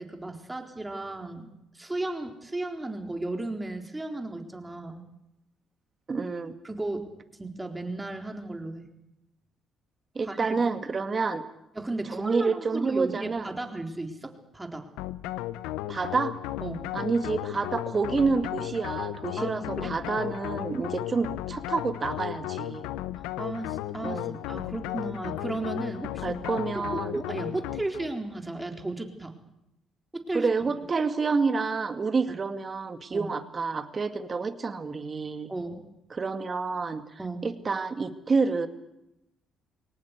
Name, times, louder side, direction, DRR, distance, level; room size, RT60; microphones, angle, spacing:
voice 1, 0.0-1.5 1.7-5.0 6.6-8.9 10.2-10.6 11.8-14.9 16.6-16.9 19.4-19.9 23.4-26.4 26.7-29.3 30.1-30.5 33.1-33.3 35.5-35.9 37.2-37.5, right 2 dB, 15° right, 3 dB, 4.1 m, -34 dB
voice 2, 6.1-6.6 10.1-11.4 12.1-13.5 15.9-16.4 16.9-22.9 24.0-24.4 26.2-27.2 30.3-35.5 36.1-37.0 37.4-38.7, right 4 dB, 40° right, 9 dB, 2.2 m, -28 dB
sound 1, 15.0-28.2, left 14 dB, 85° left, 0.8 m, -35 dB
22.5 x 19.0 x 8.4 m, 0.86 s
supercardioid pair, 65°, 0 cm